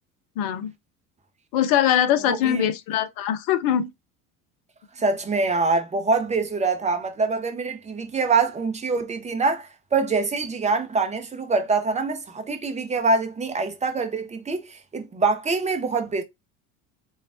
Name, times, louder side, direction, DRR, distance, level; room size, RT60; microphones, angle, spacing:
voice 1, 0.4-0.7 1.5-3.9, left 10 dB, 55° left, 0.6 m, -22 dB
voice 2, 2.3-2.7 5.0-16.2, right 4 dB, 15° right, 0.6 m, -24 dB
3.1 x 2.3 x 2.4 m
hypercardioid pair, 65°, 43 cm